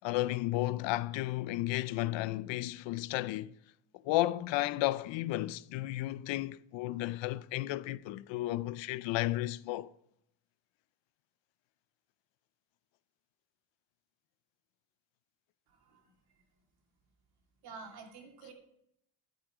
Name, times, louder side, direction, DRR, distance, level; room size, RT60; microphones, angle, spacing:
voice 1, 0.0-3.5 4.0-9.9, left 17 dB, 85° left, 0.6 m, -33 dB
voice 2, 15.7-16.1 17.6-18.5, right 4 dB, 60° right, 2.5 m, -49 dB
12.0 x 7.6 x 4.9 m
cardioid pair, 175°, 44 cm